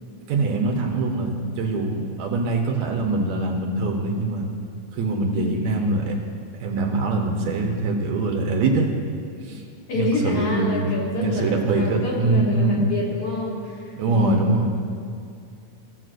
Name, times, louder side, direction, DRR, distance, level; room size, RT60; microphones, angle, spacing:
voice 1, 0.3-4.5 4.9-6.2 6.6-8.9 9.4-9.6 9.9-10.9 11.2-12.9 14.0-14.7, right 3 dB, 75° right, 1 dB, 2.0 m, -23 dB
voice 2, 9.9-14.6, left 3 dB, 60° left, -4 dB, 1.8 m, -27 dB
16.0 x 7.6 x 2.5 m, 2.4 s
omnidirectional pair, 3.5 m